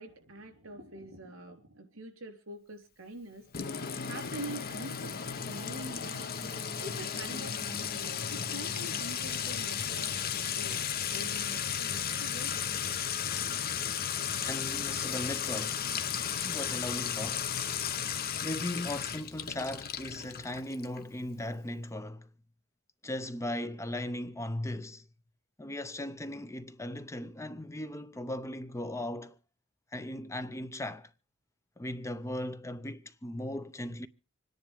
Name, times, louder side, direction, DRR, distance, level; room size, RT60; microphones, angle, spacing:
voice 1, 0.0-3.5 4.0-6.4 6.8-10.8 11.1-12.7, right 1 dB, 70° right, 3.6 m, -45 dB
Sink (filling or washing) / Trickle dribble / Fill (with liquid), 3.5-21.0, left 8 dB, 45° left, 0.9 m, -34 dB
voice 2, 14.4-15.9 16.4-17.5 18.4-22.3 23.0-25.0 25.6-29.4 29.9-31.1 31.8-34.1, left 1 dB, 15° left, 0.6 m, -37 dB
26.0 x 10.5 x 3.5 m
head